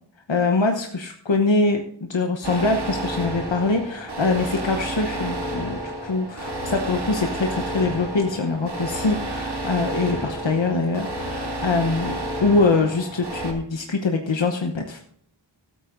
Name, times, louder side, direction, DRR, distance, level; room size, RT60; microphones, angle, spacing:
voice 1, 0.3-15.0, left 3 dB, 85° left, 3 dB, 1.0 m, -23 dB
sound 1, 2.4-13.5, right 1 dB, 65° right, 2.3 m, -30 dB
16.5 x 9.0 x 2.6 m, 0.65 s
wide cardioid pair, 50°, 44 cm